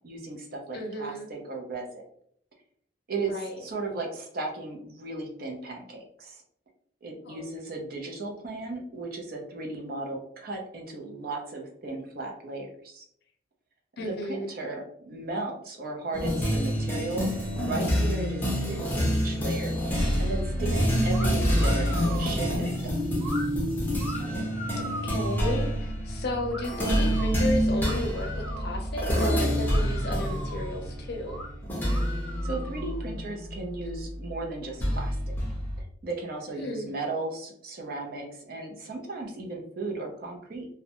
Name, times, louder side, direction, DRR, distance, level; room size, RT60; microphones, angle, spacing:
voice 1, 0.0-2.0 3.1-6.4 7.0-13.0 14.0-19.8 20.2-22.9 32.4-35.3 36.0-40.7, right 2 dB, 55° right, 1 dB, 0.6 m, -36 dB
voice 2, 0.7-1.3 3.3-3.6 7.2-7.5 14.0-14.5 24.8-31.4 36.6-36.9, left 1 dB, 60° left, 3 dB, 0.5 m, -34 dB
sound 1, 16.1-34.0 34.8-35.8, equal, 10° left, 0.5 m, -27 dB
sound 2, 21.1-21.3 21.6-22.3 23.2-23.5 24.0-25.5 26.5-27.3 27.8-28.7 29.2-29.3 29.6-30.7 31.2-31.5 31.9-33.0, equal, 10° right, 1.1 m, -40 dB
2.3 x 2.1 x 2.8 m, 0.64 s
head